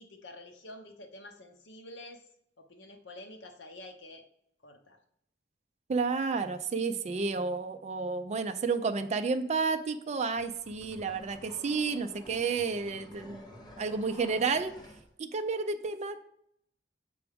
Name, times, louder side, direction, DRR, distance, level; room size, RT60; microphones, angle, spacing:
voice 1, 0.0-2.2 2.6-4.2 4.6-5.0, left 1 dB, 70° left, 5 dB, 0.9 m, -48 dB
voice 2, 5.9-13.4 13.8-14.7 15.2-16.2, right 4 dB, 35° right, 8 dB, 0.4 m, -31 dB
sound 1, 10.4-15.1, left 1 dB, 25° left, 1.0 m, -50 dB
6.9 x 4.7 x 3.5 m, 0.72 s
head